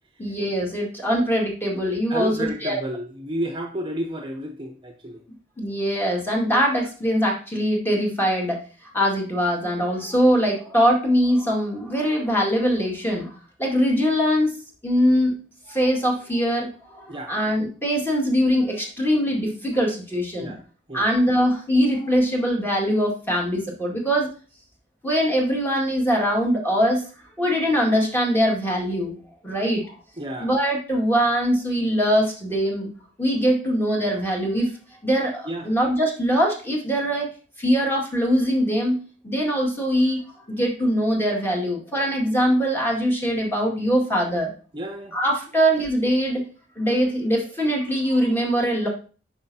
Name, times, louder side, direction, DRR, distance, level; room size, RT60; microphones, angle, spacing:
voice 1, 0.2-2.8 5.6-8.6 8.9-13.3 13.6-14.5 14.8-15.4 15.7-20.5 20.9-24.3 25.0-27.0 27.4-29.2 29.4-30.0 30.4-32.9 33.2-34.7 35.0-37.3 37.6-44.5 45.1-46.5 46.8-48.9, equal, 10° left, -1 dB, 2.0 m, -22 dB
voice 2, 2.1-5.2 17.1-17.4 20.4-20.6 20.9-21.1 30.2-30.5 35.4-35.7 44.7-45.2, equal, 30° right, 3 dB, 0.8 m, -31 dB
9.3 x 6.3 x 2.8 m, 0.37 s
head